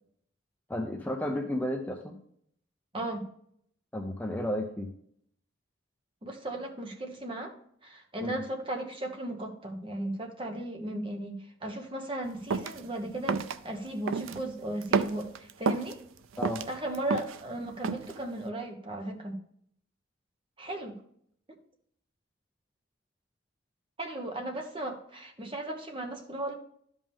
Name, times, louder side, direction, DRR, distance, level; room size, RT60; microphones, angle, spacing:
voice 1, 0.7-2.2 3.9-4.9 8.2-8.3 16.4-16.6, left 1 dB, 10° left, 2 dB, 0.7 m, -32 dB
voice 2, 2.9-3.2 6.2-7.5 7.8-16.0 16.7-19.4 20.6-21.0 24.0-26.5, right 1 dB, 25° right, 3 dB, 1.1 m, -36 dB
sound 1, 12.5-12.8 13.3-13.6 14.1-14.4 14.8-15.9 16.3-17.4 17.8-18.2, right 5 dB, 85° right, 0.5 m, -30 dB
12.0 x 5.3 x 3.6 m, 0.67 s
head